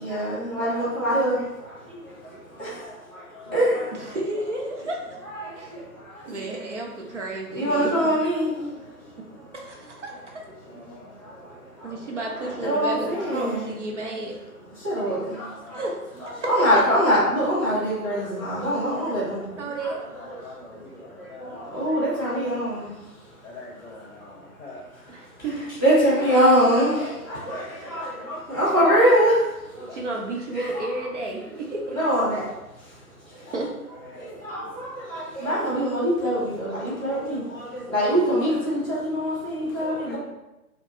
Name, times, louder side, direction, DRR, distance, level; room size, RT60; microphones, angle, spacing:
voice 1, 0.0-2.8 3.5-4.0 5.3-5.8 6.5-6.6 7.5-9.2 10.7-12.1 12.4-13.7 14.8-15.8 16.5-23.3 24.2-24.5 25.5-30.0 30.5-30.6 31.9-32.5 32.7-33.5 34.1-40.2, equal, 15° right, -14 dB, 0.7 m, -24 dB
voice 2, 3.3-3.7 4.1-4.4 4.7-4.8 5.4-5.5 10.7-12.1 14.8-15.9 18.7-19.5 20.1-22.0 22.4-22.8 23.4-25.1 25.5-25.6 27.8-28.1 29.8-30.3 33.2-33.6 34.0-35.5, left 2 dB, 45° left, -2 dB, 0.6 m, -47 dB
voice 3, 3.9-5.2 5.6-5.7 6.3-8.1 9.5-10.4 11.8-14.3 15.7-16.0 16.4-16.5 19.6-20.0 25.1-25.6 29.9-32.1 33.5-33.7, right 2 dB, 50° right, -1 dB, 0.7 m, -32 dB
2.8 x 2.2 x 2.9 m, 0.97 s
figure-of-eight pair, 145°, 47 cm